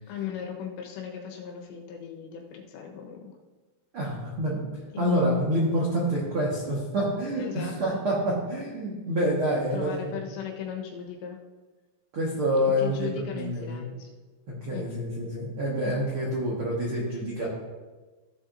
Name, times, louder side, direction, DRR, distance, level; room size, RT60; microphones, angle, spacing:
voice 1, 0.1-3.3 4.9-5.1 7.4-8.0 9.7-11.4 12.8-14.1 14.7-14.9, left 8 dB, 80° left, 1 dB, 3.3 m, -37 dB
voice 2, 3.9-4.6 5.0-10.1 12.1-13.8 14.5-17.5, equal, 85° right, -5 dB, 1.2 m, -27 dB
16.0 x 7.2 x 2.6 m, 1.3 s
omnidirectional pair, 5.2 m